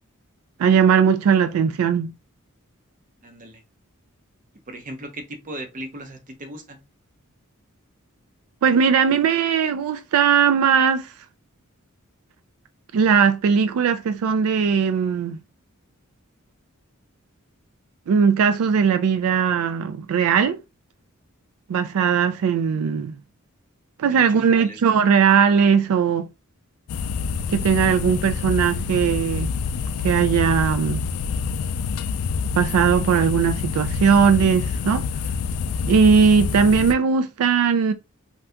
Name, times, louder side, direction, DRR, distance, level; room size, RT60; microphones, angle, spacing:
voice 1, 0.6-2.1 8.6-11.1 12.9-15.4 18.1-20.6 21.7-23.1 24.0-26.3 27.5-29.5 30.0-31.1 32.5-35.1 35.9-37.9, right 6 dB, 85° right, 0.3 m, -19 dB
voice 2, 3.2-3.6 4.7-6.8 24.1-25.1 27.8-28.0, right 1 dB, 40° right, 0.7 m, -38 dB
sound 1, 26.9-36.9, left 5 dB, 85° left, 0.3 m, -27 dB
2.7 x 2.3 x 3.4 m
head